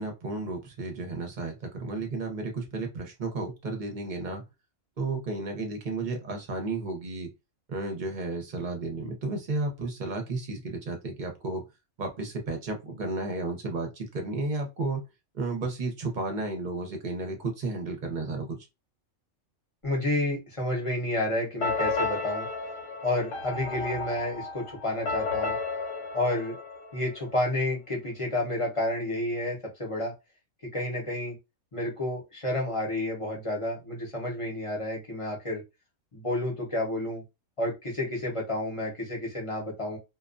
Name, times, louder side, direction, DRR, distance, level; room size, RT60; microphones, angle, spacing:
voice 1, 0.0-4.4 5.0-7.3 7.7-11.6 12.0-15.0 15.3-18.6, right 3 dB, 45° right, 3 dB, 0.7 m, -33 dB
voice 2, 19.8-22.5 23.0-25.6 26.1-26.6 26.9-30.1 30.7-31.4 31.7-35.6 36.1-37.2 37.6-40.0, left 1 dB, 30° left, -2 dB, 0.8 m, -30 dB
sound 1, 21.6-27.4, left 4 dB, 65° left, 1.0 m, -33 dB
2.3 x 2.2 x 2.4 m, 0.23 s
omnidirectional pair, 1.4 m